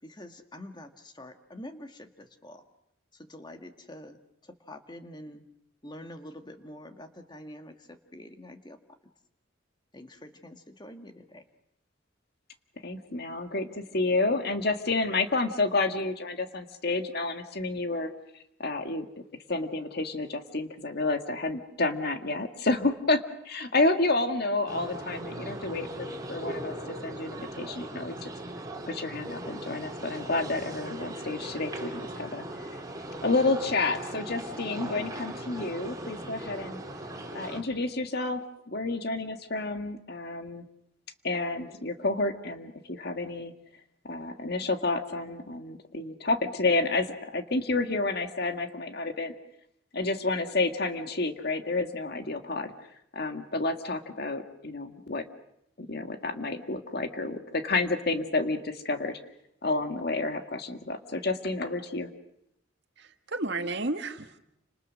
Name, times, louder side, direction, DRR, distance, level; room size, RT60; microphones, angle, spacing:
voice 1, 0.0-2.6 3.1-4.2 4.4-5.4 5.8-8.8 9.9-11.4, left 1 dB, 25° left, 6 dB, 1.8 m, -46 dB
voice 2, 12.8-18.1 18.6-19.1 19.5-26.7 27.0-28.3 28.8-32.4 33.2-36.8 37.3-40.6 41.2-43.5 44.0-49.4 49.9-52.7 53.1-55.2 55.8-59.2 59.6-62.1, left 3 dB, 55° left, 7 dB, 1.9 m, -30 dB
sound 1, 24.7-37.6, right 1 dB, 20° right, 3.5 m, -39 dB
voice 3, 63.0-64.4, right 2 dB, 60° right, 7 dB, 1.7 m, -32 dB
30.0 x 27.0 x 6.4 m, 0.80 s
head